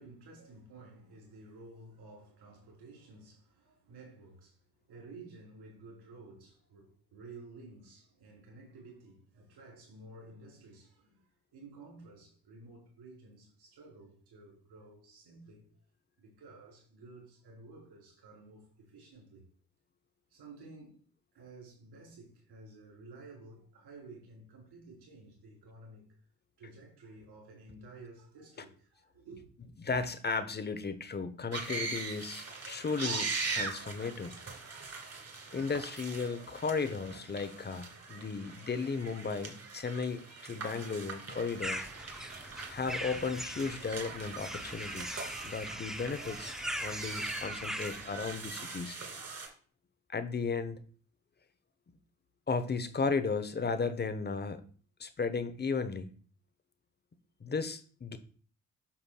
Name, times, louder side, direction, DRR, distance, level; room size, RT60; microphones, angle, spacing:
voice 1, 0.0-4.6 4.9-15.7 16.2-19.4 20.3-21.0 21.3-26.1 26.6-29.5, right 3 dB, 55° right, 3.9 m, -53 dB
voice 2, 29.8-34.4 35.5-41.8 42.7-46.5 46.8-49.0 50.1-50.8 52.5-54.6 55.0-56.1 57.4-58.2, left 4 dB, 20° left, 0.9 m, -35 dB
sound 1, 31.5-49.5, right 4 dB, 35° right, 2.5 m, -41 dB
sound 2, 41.6-48.5, equal, ahead, 0.7 m, -41 dB
8.5 x 6.8 x 2.3 m
figure-of-eight pair, 45°, 46 cm